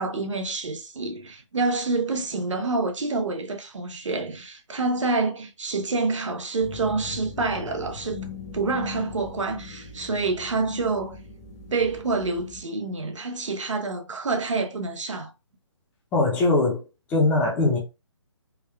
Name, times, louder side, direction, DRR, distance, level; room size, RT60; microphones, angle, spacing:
voice 1, 0.0-8.3 8.5-11.2 11.7-15.3, right 3 dB, 85° right, 0.9 m, -27 dB
sound 1, 6.6-12.6, left 5 dB, 35° left, 0.9 m, -40 dB
voice 2, 16.1-16.8 17.1-17.8, left 2 dB, 10° left, 0.6 m, -21 dB
3.6 x 2.3 x 3.3 m
hypercardioid pair, 160°, 15 cm